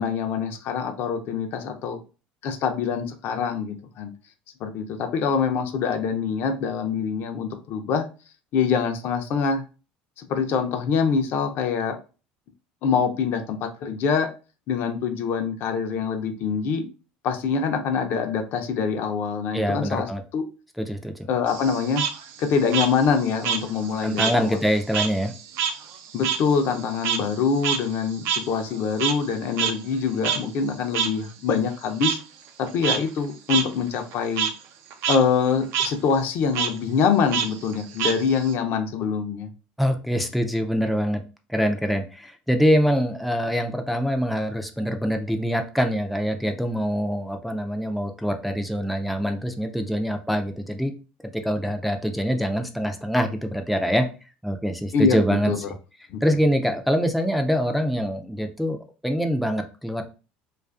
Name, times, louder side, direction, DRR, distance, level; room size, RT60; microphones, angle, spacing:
voice 1, 0.0-2.0 2.4-4.1 4.6-8.0 8.5-9.6 10.2-12.0 12.8-14.3 14.7-16.9 17.2-20.4 21.3-22.0 22.4-24.6 26.1-32.2 32.6-34.5 35.1-39.5 54.9-55.6 56.1-56.2, left 6 dB, 60° left, 0.5 m, -24 dB
voice 2, 19.5-20.2 20.8-21.3 24.0-25.3 39.8-41.2 41.5-50.9 51.4-54.1 54.4-55.5 56.2-58.8 59.0-60.1, equal, ahead, 0.3 m, -24 dB
Frog, 21.5-24.4 24.7-29.3 29.6-29.7 30.2-30.4 30.9-31.1 32.0-32.2 32.7-33.0 33.5-33.6 34.0-34.5 34.9-35.2 35.5-35.9 36.5-36.7 37.3-38.5, right 8 dB, 65° right, 0.4 m, -26 dB
2.4 x 2.4 x 2.3 m
supercardioid pair, 100°, 4 cm